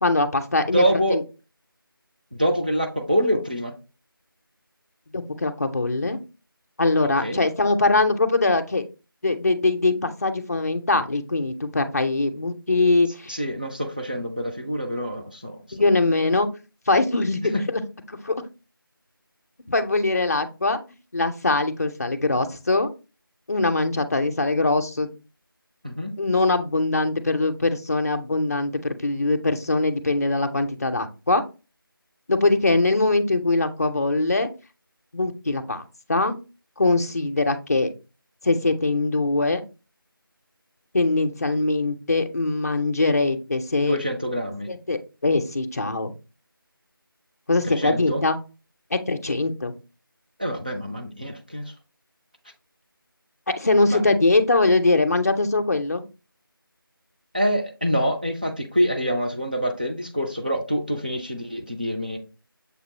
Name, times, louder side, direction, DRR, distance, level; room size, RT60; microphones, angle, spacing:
voice 1, 0.0-1.2 5.1-6.2 6.8-8.8 9.2-13.4 15.7-16.5 16.9-17.8 18.1-18.4 19.7-20.8 21.1-22.9 23.5-25.1 26.2-31.4 32.3-34.5 35.1-35.8 36.1-36.4 36.8-37.9 38.4-39.6 40.9-44.0 44.7-46.1 47.5-48.4 48.9-49.7 53.6-56.0, left 2 dB, 40° left, 7 dB, 0.5 m, -22 dB
voice 2, 0.7-1.2 2.3-3.8 7.0-7.4 13.3-15.6 25.8-26.1 43.8-44.7 47.6-48.2 50.4-51.6 53.9-54.0 57.3-62.2, equal, 25° right, 2 dB, 0.4 m, -25 dB
6.7 x 2.3 x 3.1 m, 0.31 s
figure-of-eight pair, 175°, 12 cm